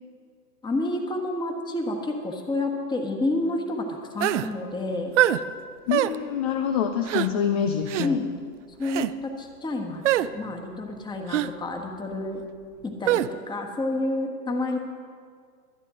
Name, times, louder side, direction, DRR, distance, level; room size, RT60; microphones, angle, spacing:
voice 1, 0.6-5.2 8.0-8.3 8.8-10.0 10.3-12.4 12.8-14.8, left 2 dB, 10° left, 3 dB, 1.4 m, -29 dB
sound 1, 4.2-4.5 5.2-5.4 5.9-6.1 7.1-7.3 7.9-8.1 8.8-9.1 10.0-10.3 11.3-11.5 13.1-13.3, right 13 dB, 50° right, 0.5 m, -23 dB
voice 2, 5.9-8.2, left 8 dB, 25° left, 6 dB, 0.4 m, -26 dB
24.0 x 9.1 x 3.8 m, 2.1 s
hypercardioid pair, 130°, 47 cm